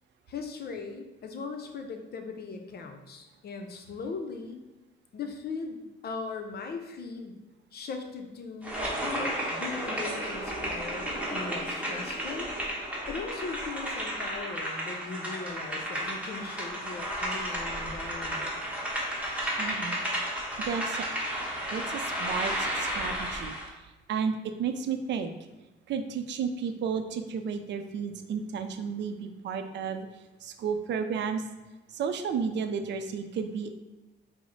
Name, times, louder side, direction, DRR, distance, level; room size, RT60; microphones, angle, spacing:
voice 1, 0.3-4.6 5.1-7.4 7.7-12.5 13.1-18.6, left 4 dB, 55° left, 5 dB, 0.6 m, -39 dB
sound 1, 8.6-23.7, equal, 5° right, 1.1 m, -33 dB
voice 2, 19.6-20.0 20.6-21.1 21.7-23.7 24.1-25.3 25.9-30.1 30.4-31.4 31.9-33.7, right 6 dB, 65° right, 8 dB, 0.5 m, -32 dB
4.7 x 2.1 x 4.0 m, 1.1 s
cardioid pair, 90°, 20 cm